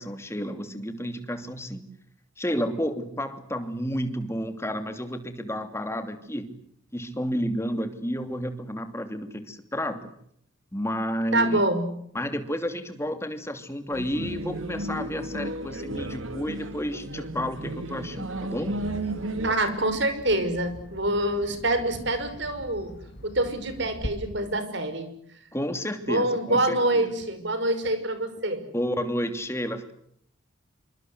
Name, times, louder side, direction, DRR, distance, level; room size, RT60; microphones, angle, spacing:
voice 1, 0.0-1.8 2.4-6.6 6.9-10.2 10.7-11.6 12.1-18.8 25.5-27.1 28.7-29.9, equal, 15° left, 8 dB, 2.8 m, -31 dB
voice 2, 11.3-11.9 19.4-22.9 23.2-25.1 26.1-28.6, right 1 dB, 60° right, 10 dB, 5.8 m, -26 dB
sound 1, 13.9-19.5, right 1 dB, 80° right, 2.8 m, -33 dB
Bird vocalization bird call bird song, 18.3-24.1, equal, 55° left, 4.8 m, -43 dB
27.5 x 25.5 x 8.1 m, 0.70 s
head